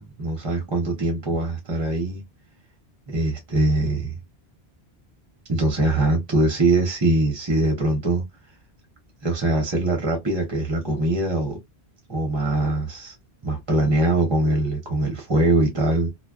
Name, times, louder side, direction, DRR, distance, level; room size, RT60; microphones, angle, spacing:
voice 1, 0.0-2.2 3.1-4.2 5.5-8.2 9.2-11.6 12.1-13.1 13.4-16.1, right 2 dB, 30° right, 0.7 m, -22 dB
2.3 x 2.2 x 2.3 m
omnidirectional pair, 1.1 m